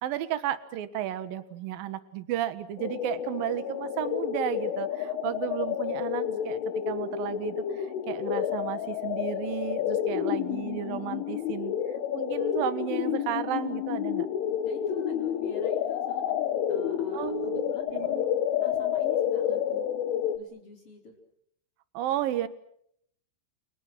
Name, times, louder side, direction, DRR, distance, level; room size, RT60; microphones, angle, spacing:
voice 1, 0.0-11.7 12.1-14.3 17.1-18.2 21.9-22.5, right 12 dB, 65° right, 12 dB, 2.4 m, -33 dB
sound 1, 2.8-20.4, left 10 dB, 75° left, 3.9 m, -30 dB
voice 2, 14.6-18.3 18.6-19.9 20.3-21.2, left 2 dB, 30° left, 2 dB, 4.8 m, -45 dB
29.5 x 28.5 x 6.2 m, 0.69 s
omnidirectional pair, 5.9 m